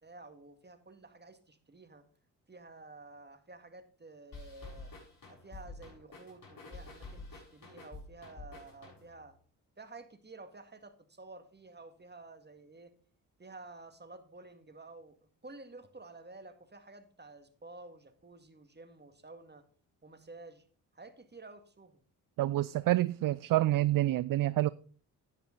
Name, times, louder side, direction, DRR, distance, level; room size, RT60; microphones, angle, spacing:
voice 1, 0.0-2.1 2.5-4.9 5.3-9.4 9.8-12.9 13.4-19.7 20.0-20.6 20.9-22.0, right 3 dB, 25° right, 1.9 m, -52 dB
sound 1, 4.3-9.3, left 3 dB, 50° left, 6.6 m, -49 dB
voice 2, 22.4-24.7, right 15 dB, 50° right, 0.5 m, -28 dB
10.0 x 9.9 x 3.9 m
hypercardioid pair, 40°, 42 cm